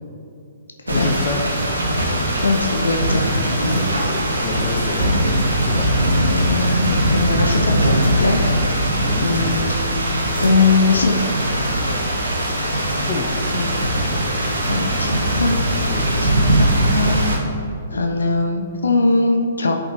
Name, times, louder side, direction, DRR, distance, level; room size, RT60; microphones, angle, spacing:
voice 1, 0.9-1.4 3.7-5.3 5.6-5.9 9.0-9.3 12.3-12.6 13.0-13.4 15.9-16.1, left 4 dB, 30° left, 3 dB, 0.8 m, -29 dB
sound 1, 0.9-17.4, right 1 dB, 80° right, 1.4 m, -20 dB
voice 2, 2.4-3.3 3.6-3.9 6.2-8.4 9.2-9.9 10.4-11.1 13.5-13.8 14.6-15.6 16.2-17.3 17.9-19.7, left 3 dB, 75° left, 3 dB, 0.7 m, -21 dB
10.5 x 5.4 x 2.9 m, 2.7 s
figure-of-eight pair, 125°, 0 cm